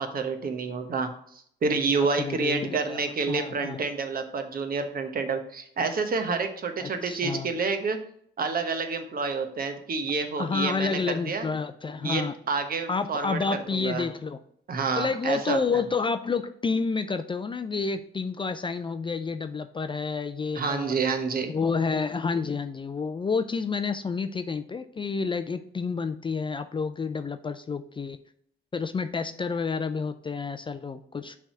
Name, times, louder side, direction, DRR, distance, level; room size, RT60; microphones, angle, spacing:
voice 1, 0.0-8.0 8.4-11.0 11.2-11.5 12.0-13.4 13.7-14.0 14.7-15.8 20.5-21.5, right 4 dB, 45° right, 7 dB, 1.0 m, -29 dB
voice 2, 2.2-3.8 6.8-7.5 10.4-12.3 12.9-14.4 15.0-21.0 21.5-28.2 28.7-31.4, left 4 dB, 25° left, 10 dB, 0.4 m, -29 dB
5.9 x 3.5 x 5.5 m, 0.66 s
cardioid pair, 90°, 20 cm